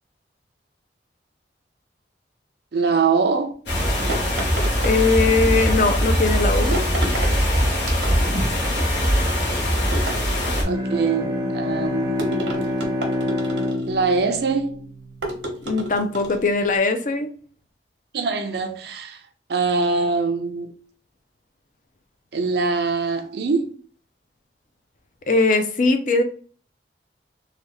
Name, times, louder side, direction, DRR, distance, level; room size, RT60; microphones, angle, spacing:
voice 1, 2.7-3.5 10.7-12.2 13.9-14.8 18.1-19.2 19.5-20.7 22.3-23.7, right 4 dB, 65° right, 0.4 m, -23 dB
sound 1, 3.7-10.6, equal, 75° left, 1.1 m, -21 dB
sound 2, 4.1-5.5 6.7-7.4 7.8-8.5 9.9-10.8 12.2-14.0 15.2-16.5, right 1 dB, 90° right, 0.8 m, -31 dB
voice 2, 4.8-6.7 15.7-17.3 25.3-26.2, left 3 dB, 45° left, 0.4 m, -20 dB
Bowed string instrument, 10.4-15.8, left 1 dB, 20° right, 0.6 m, -27 dB
3.3 x 2.3 x 2.9 m
head